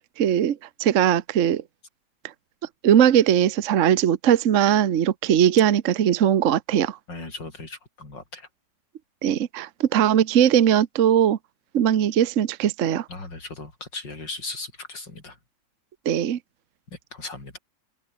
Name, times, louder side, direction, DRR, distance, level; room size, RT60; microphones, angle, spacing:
voice 1, 0.0-1.6 2.8-7.0 9.2-11.4 11.7-13.0 16.0-16.4, right 10 dB, 50° right, 1.1 m, -20 dB
voice 2, 7.1-8.5 13.1-15.4 16.9-17.6, left 3 dB, 75° left, 5.9 m, -37 dB
open air
omnidirectional pair, 1.9 m